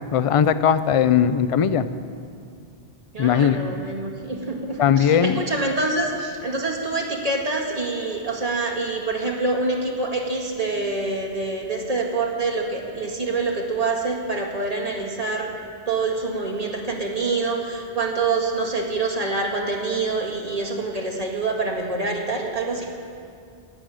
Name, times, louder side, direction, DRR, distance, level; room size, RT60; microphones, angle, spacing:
voice 1, 0.1-1.8 3.2-3.6 4.8-5.4, left 8 dB, 45° left, 12 dB, 0.4 m, -18 dB
voice 2, 3.1-15.5 15.9-22.9, right 3 dB, 40° right, -2 dB, 2.0 m, -26 dB
11.5 x 9.8 x 9.0 m, 2.4 s
omnidirectional pair, 1.0 m